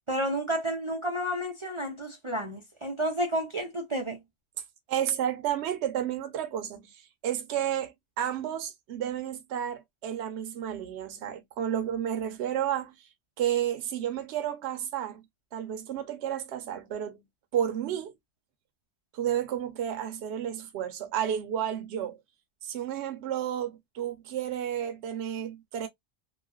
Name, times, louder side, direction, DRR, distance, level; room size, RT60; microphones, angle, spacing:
voice 1, 0.1-4.2, equal, 45° right, 0.4 m, -31 dB
voice 2, 4.9-12.9 13.4-15.2 15.5-17.2 17.5-18.1 19.1-22.2 22.6-25.9, right 10 dB, 65° right, 0.9 m, -31 dB
3.1 x 2.2 x 2.2 m
omnidirectional pair, 1.2 m